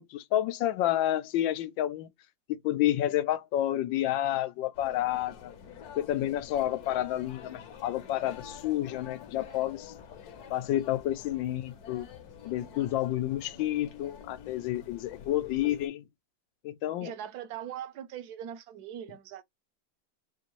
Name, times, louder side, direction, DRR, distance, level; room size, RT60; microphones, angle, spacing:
voice 1, 0.0-2.1 2.5-5.5 6.0-9.9 10.5-12.1 12.4-16.1 16.6-17.1, left 13 dB, 90° left, 1.3 m, -30 dB
sound 1, 4.7-15.9, left 7 dB, 65° left, 1.2 m, -48 dB
voice 2, 17.0-19.4, right 10 dB, 65° right, 1.1 m, -40 dB
4.4 x 2.5 x 3.0 m
omnidirectional pair, 2.0 m